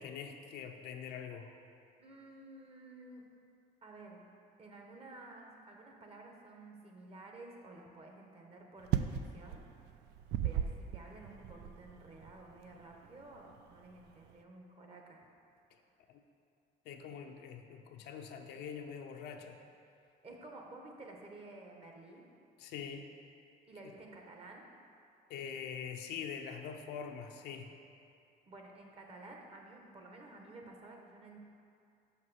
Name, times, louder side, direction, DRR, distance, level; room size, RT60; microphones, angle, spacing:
voice 1, 0.0-1.5 16.1-16.2 16.9-19.6 22.6-23.1 25.3-27.7, left 7 dB, 80° left, 4 dB, 0.7 m, -44 dB
voice 2, 2.0-3.3 3.8-4.3 4.6-9.7 10.4-15.3 20.2-22.2 23.7-24.6 28.5-31.4, right 2 dB, 35° right, 1 dB, 1.2 m, -52 dB
sound 1, 8.8-14.3, right 10 dB, 80° right, 0.4 m, -38 dB
5.7 x 5.5 x 6.4 m, 2.6 s
cardioid pair, 110°, 17 cm